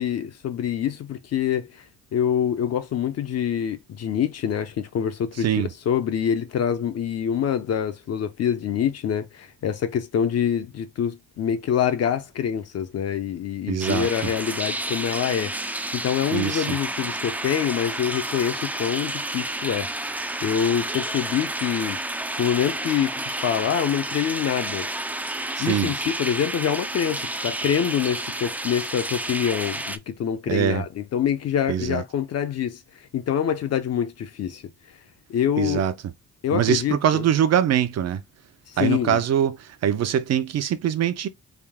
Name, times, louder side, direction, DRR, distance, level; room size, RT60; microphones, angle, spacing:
voice 1, 0.0-5.5 5.9-22.0 22.4-23.1 23.4-24.9 25.6-34.6 35.3-35.8 36.4-37.2 38.7-39.2, left 9 dB, 55° left, 0.6 m, -26 dB
voice 2, 5.4-5.7 13.7-14.1 16.3-16.8 25.6-25.9 30.5-30.8 31.7-32.0 35.6-35.9 36.5-38.2 38.8-41.3, right 9 dB, 55° right, 0.6 m, -23 dB
sound 1, 13.8-30.0, right 1 dB, 5° right, 0.3 m, -30 dB
3.6 x 2.3 x 3.5 m
cardioid pair, 90°, 30 cm